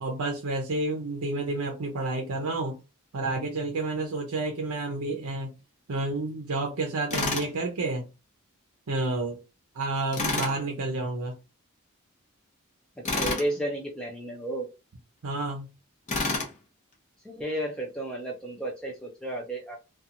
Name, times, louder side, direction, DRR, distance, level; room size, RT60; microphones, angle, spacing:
voice 1, 0.0-2.8 3.1-5.5 5.9-8.1 8.9-9.4 9.7-11.3 15.2-15.7, right 2 dB, 85° right, 0.6 m, -30 dB
Tools, 7.1-7.5 10.1-10.6 13.1-13.5 16.1-16.5, left 3 dB, 35° left, 0.7 m, -28 dB
voice 2, 13.0-14.7 17.2-19.8, right 1 dB, 5° left, 0.3 m, -33 dB
2.8 x 2.3 x 2.5 m
head